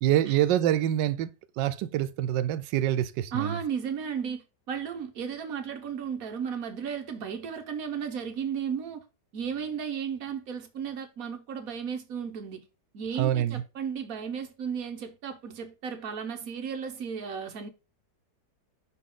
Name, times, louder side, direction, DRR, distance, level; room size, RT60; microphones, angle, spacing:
voice 1, 0.0-1.3 1.6-3.6 13.2-13.6, right 12 dB, 85° right, 1.2 m, -26 dB
voice 2, 3.3-9.0 9.3-12.6 12.9-17.7, right 7 dB, 60° right, 1.3 m, -34 dB
5.9 x 4.2 x 3.7 m
omnidirectional pair, 1.9 m